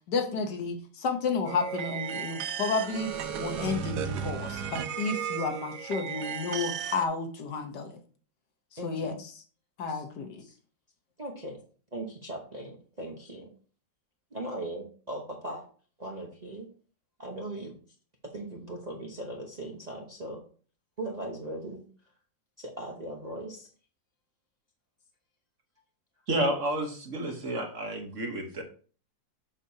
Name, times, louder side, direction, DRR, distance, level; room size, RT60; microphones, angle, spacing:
voice 1, 0.1-8.0 8.7-9.3 9.8-10.4, left 4 dB, 70° left, 5 dB, 1.5 m, -32 dB
sound 1, 1.4-7.1, right 8 dB, 70° right, 1.1 m, -35 dB
voice 2, 8.8-9.1 9.9-10.0 10.4-10.6 11.2-11.6 11.9-13.5 14.3-15.6 16.0-16.7 17.2-17.7 18.3-20.4 21.0-21.8 22.6-23.7, right 1 dB, 30° right, -1 dB, 0.8 m, -39 dB
voice 3, 26.3-28.6, right 1 dB, 45° right, 3 dB, 1.4 m, -30 dB
7.5 x 6.4 x 2.8 m, 0.41 s
omnidirectional pair, 2.0 m